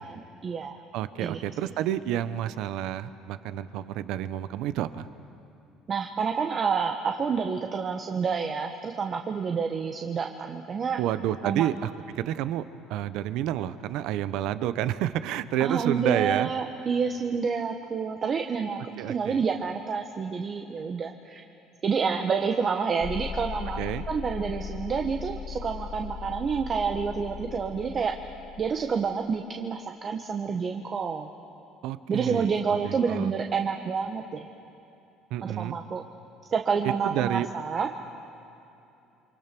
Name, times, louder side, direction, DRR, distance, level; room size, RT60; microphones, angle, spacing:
voice 1, 0.0-0.8 1.2-1.4 5.9-11.0 11.4-11.7 15.6-18.8 19.1-21.4 21.8-28.1 28.6-31.3 32.1-34.5 35.4-36.0 36.5-37.9, right 5 dB, 40° right, 4 dB, 1.2 m, -28 dB
voice 2, 0.9-5.1 11.0-12.6 12.9-16.5 19.0-19.4 23.8-24.1 31.8-32.5 32.8-33.4 35.3-35.8 37.0-37.5, right 12 dB, 75° right, 13 dB, 0.8 m, -29 dB
sound 1, 23.0-29.1, left 7 dB, 40° left, 1.1 m, -38 dB
28.5 x 24.0 x 6.1 m, 2.8 s
supercardioid pair, 90°, 0 cm